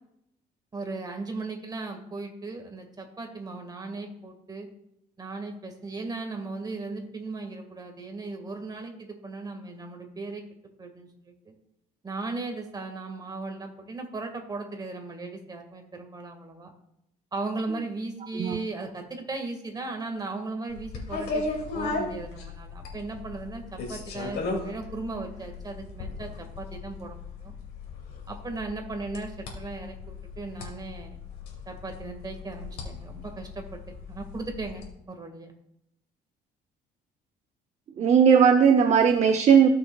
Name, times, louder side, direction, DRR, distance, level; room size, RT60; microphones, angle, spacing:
voice 1, 0.7-4.7 5.2-10.4 10.8-11.5 12.0-16.7 17.3-21.5 21.7-27.5 28.3-31.2 31.6-35.5, right 3 dB, 25° right, 4 dB, 1.7 m, -37 dB
sound 1, 20.7-34.9, left 3 dB, 70° left, 2.4 m, -37 dB
voice 2, 38.0-39.7, right 7 dB, 40° right, 6 dB, 0.7 m, -18 dB
15.5 x 6.4 x 2.3 m, 0.81 s
cardioid pair, 110°, 17 cm